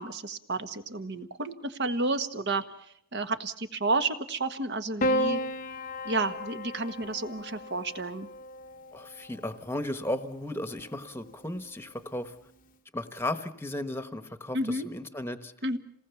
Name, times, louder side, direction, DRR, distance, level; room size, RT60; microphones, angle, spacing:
voice 1, 0.0-5.4 6.0-8.3 14.5-14.9 15.6-15.8, right 2 dB, 50° right, 9 dB, 1.4 m, -31 dB
Piano, 5.0-9.5 10.7-11.4, left 1 dB, 35° left, 0.9 m, -33 dB
voice 2, 8.9-12.3 12.9-15.5, left 1 dB, 10° left, 10 dB, 1.2 m, -35 dB
28.0 x 19.0 x 7.1 m, 0.69 s
head